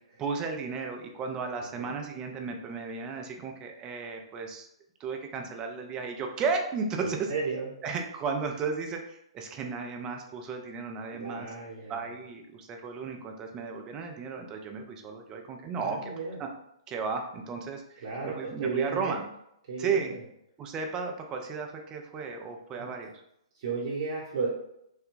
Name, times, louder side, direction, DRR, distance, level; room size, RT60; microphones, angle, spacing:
voice 1, 0.2-4.7 5.0-7.3 7.8-11.5 11.9-16.1 16.4-16.5 16.9-19.2 19.8-20.1 20.6-23.1, right 5 dB, 25° right, 3 dB, 0.5 m, -34 dB
voice 2, 1.6-1.9 7.0-7.7 11.1-12.0 15.8-16.4 18.0-19.2 19.7-20.2 22.7-22.9 23.5-24.5, right 4 dB, 50° right, -4 dB, 1.0 m, -34 dB
3.4 x 2.2 x 3.8 m, 0.77 s
figure-of-eight pair, 120°, 3 cm